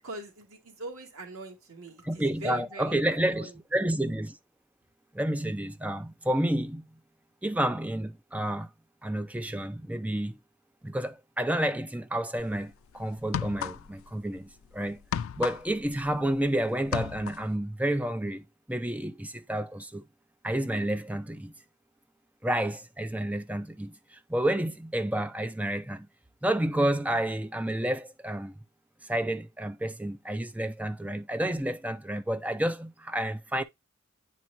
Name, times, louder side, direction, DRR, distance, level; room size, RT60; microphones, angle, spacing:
voice 1, 0.0-3.5, right 2 dB, 90° right, 2.0 m, -42 dB
voice 2, 2.0-4.4 5.1-6.8 7.4-8.7 9.0-10.4 10.8-15.0 15.4-20.0 20.4-21.5 22.4-26.1 26.4-28.5 29.0-33.6, right 1 dB, 5° right, 0.4 m, -30 dB
sound 1, 12.4-12.6 13.2-14.1 14.4-16.5 16.8-17.5, left 8 dB, 75° left, 0.3 m, -33 dB
9.5 x 4.5 x 2.6 m
head